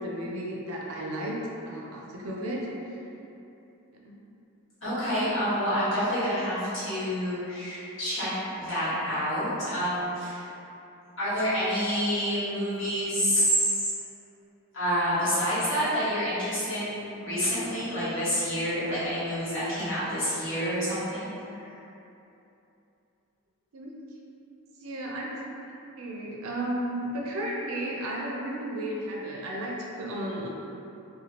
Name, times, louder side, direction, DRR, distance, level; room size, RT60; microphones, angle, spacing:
voice 1, 0.0-1.4 1.6-3.0 3.9-4.2 23.7-23.9 24.8-25.3 26.0-30.5, right 1 dB, 85° right, -2 dB, 0.5 m, -33 dB
voice 2, 4.8-10.4 11.2-13.9 14.7-21.3 21.5-21.6, equal, 60° left, -13 dB, 1.4 m, -28 dB
2.9 x 2.2 x 2.9 m, 2.9 s
head